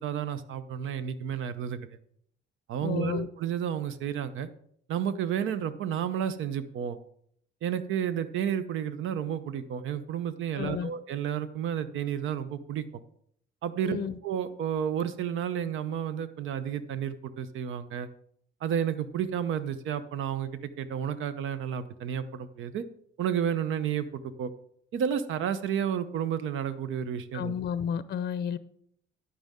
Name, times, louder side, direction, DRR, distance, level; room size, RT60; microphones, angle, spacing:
voice 1, 0.0-1.8 2.7-4.5 4.9-7.0 7.6-13.0 13.6-14.0 14.2-18.1 18.6-22.8 23.2-24.5 24.9-27.5, right 9 dB, 80° right, 13 dB, 0.8 m, -31 dB
voice 2, 2.8-3.3 10.6-10.9 13.8-14.2 27.3-28.6, left 8 dB, 55° left, 15 dB, 0.5 m, -31 dB
10.0 x 9.2 x 3.7 m, 0.68 s
cardioid pair, 90°, 20 cm